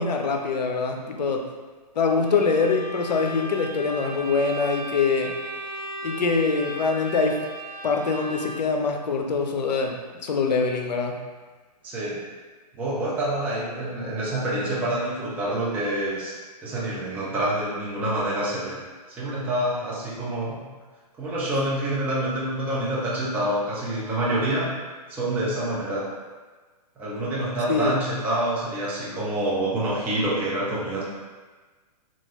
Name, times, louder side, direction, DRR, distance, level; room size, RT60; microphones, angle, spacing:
voice 1, 0.0-1.5 1.9-5.3 6.0-7.4 7.8-11.2 27.7-27.9, left 4 dB, 85° left, 3 dB, 0.5 m, -24 dB
Bowed string instrument, 2.2-8.8, right 1 dB, 55° right, 1.1 m, -36 dB
voice 2, 11.8-12.2 12.7-16.4 16.6-18.8 19.1-20.6 21.2-24.7 25.1-26.0 27.0-31.0, right 1 dB, 10° right, -7 dB, 0.4 m, -27 dB
3.0 x 2.3 x 2.9 m, 1.3 s
hypercardioid pair, 140°, 21 cm